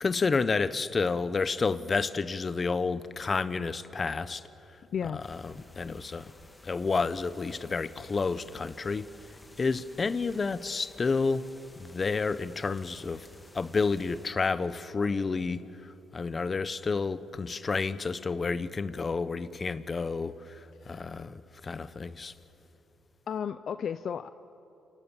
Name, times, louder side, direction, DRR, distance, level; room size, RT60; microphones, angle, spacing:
voice 1, 0.0-4.4 5.3-6.3 6.6-9.1 9.6-11.5 11.8-13.3 13.5-22.3, left 4 dB, 35° left, 1.0 m, -30 dB
voice 2, 4.9-5.2 20.8-21.2 23.3-24.3, left 7 dB, 55° left, 0.6 m, -34 dB
sound 1, 5.2-14.3, left 2 dB, 15° left, 2.3 m, -55 dB
29.0 x 27.0 x 7.3 m
cardioid pair, 90°, 0 cm